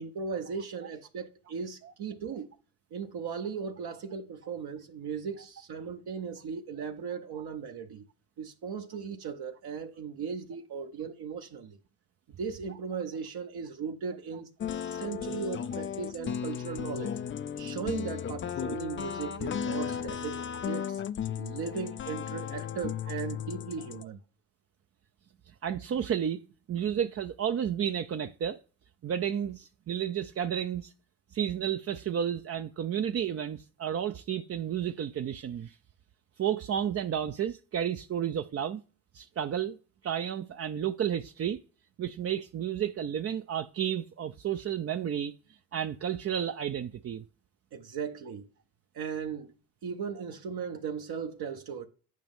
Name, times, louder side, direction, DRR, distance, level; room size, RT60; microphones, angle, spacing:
voice 1, 0.0-2.5 2.9-8.1 8.4-11.8 12.4-17.1 17.6-21.0 21.4-24.2 47.7-48.5 48.9-49.5 49.8-51.9, right 6 dB, 55° right, 0.8 m, -37 dB
sound 1, 14.6-24.0, left 8 dB, 30° left, 0.3 m, -35 dB
voice 2, 25.6-26.4 26.7-28.6 29.0-30.9 31.3-35.8 36.4-38.8 39.1-39.8 40.0-41.6 42.0-45.3 45.7-47.2, right 9 dB, 35° right, 0.4 m, -31 dB
9.4 x 5.1 x 3.6 m
supercardioid pair, 55°, 47 cm